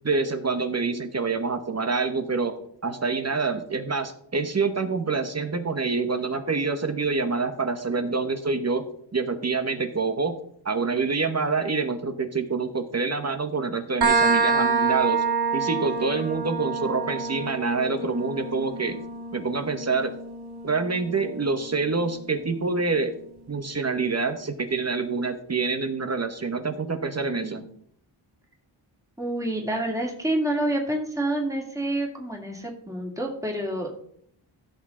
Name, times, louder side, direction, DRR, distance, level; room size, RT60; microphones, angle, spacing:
voice 1, 0.0-2.6 2.8-8.8 9.1-10.4 10.6-15.2 15.5-19.0 19.3-20.1 20.6-23.1 23.5-27.7, right 4 dB, 35° right, 8 dB, 1.0 m, -26 dB
sound 1, 14.0-21.4, right 4 dB, 55° right, 1.6 m, -27 dB
voice 2, 29.2-33.9, right 1 dB, 5° right, 0 dB, 2.2 m, -28 dB
15.5 x 6.1 x 3.8 m, 0.66 s
wide cardioid pair, 90°, 46 cm